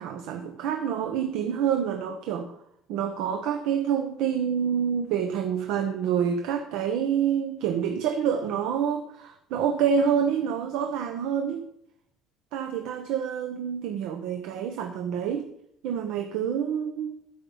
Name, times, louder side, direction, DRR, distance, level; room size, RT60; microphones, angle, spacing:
voice 1, 0.0-2.5 2.9-11.7 12.5-15.5 15.8-17.2, right 8 dB, 70° right, 5 dB, 1.0 m, -27 dB
12.5 x 5.5 x 7.2 m, 0.75 s
cardioid pair, 175°, 0 cm